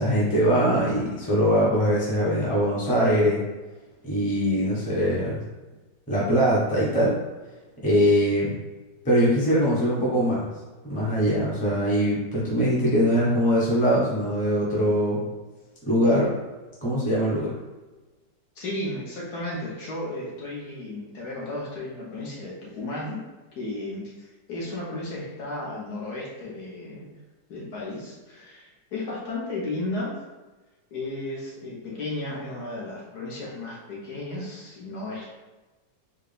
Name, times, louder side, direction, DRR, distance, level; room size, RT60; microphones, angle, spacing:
voice 1, 0.0-3.4 4.0-5.4 6.1-7.1 7.8-8.5 9.0-10.5 10.8-15.2 15.9-16.3 16.8-17.5, equal, 5° left, -7 dB, 0.7 m, -22 dB
voice 2, 18.5-23.3 23.5-27.1 27.5-30.2 30.9-35.3, left 2 dB, 65° left, -5 dB, 1.5 m, -34 dB
4.2 x 2.4 x 3.3 m, 1.2 s
omnidirectional pair, 2.0 m